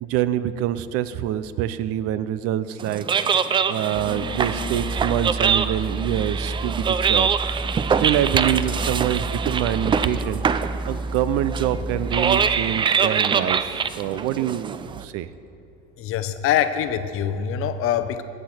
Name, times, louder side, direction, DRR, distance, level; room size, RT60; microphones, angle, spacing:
voice 1, 0.0-3.1 3.7-7.3 8.0-10.4 10.9-15.3, right 12 dB, 55° right, 15 dB, 0.6 m, -25 dB
sound 1, 2.8-15.0, right 6 dB, 20° right, 0.3 m, -24 dB
sound 2, 3.9-15.3 15.6-15.9, right 1 dB, 15° left, 1.1 m, -32 dB
voice 2, 16.0-18.2, left 9 dB, 50° left, 11 dB, 0.8 m, -24 dB
17.5 x 6.7 x 4.4 m, 2.9 s
supercardioid pair, 95°, 29 cm